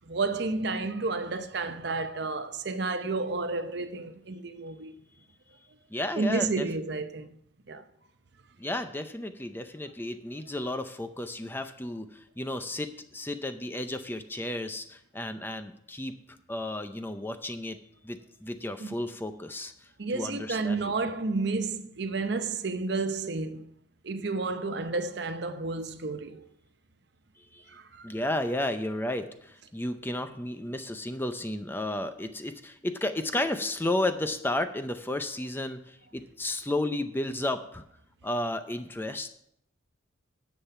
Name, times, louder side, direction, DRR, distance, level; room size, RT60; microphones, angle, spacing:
voice 1, 0.1-4.9 6.2-7.3 7.7-7.8 18.8-18.9 20.0-23.7 24.0-26.4 27.7-28.1, right 3 dB, 60° right, 0.7 m, -31 dB
voice 2, 5.9-6.7 8.6-16.1 16.5-17.8 18.0-21.1 27.4-27.7 28.0-37.8 38.2-39.3, left 1 dB, 10° left, 0.5 m, -33 dB
10.0 x 7.4 x 5.7 m
head